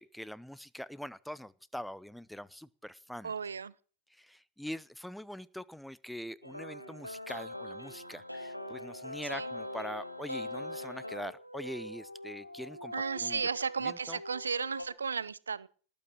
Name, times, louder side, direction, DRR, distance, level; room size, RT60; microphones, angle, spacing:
voice 1, 0.0-3.3 4.1-13.4 13.8-14.2, equal, ahead, 0.8 m, -43 dB
voice 2, 3.2-3.7 9.3-9.5 12.9-15.7, right 5 dB, 75° right, 0.8 m, -34 dB
sound 1, 6.4-14.8, left 1 dB, 90° left, 1.9 m, -42 dB
19.0 x 8.6 x 7.6 m
figure-of-eight pair, 90°, 0 cm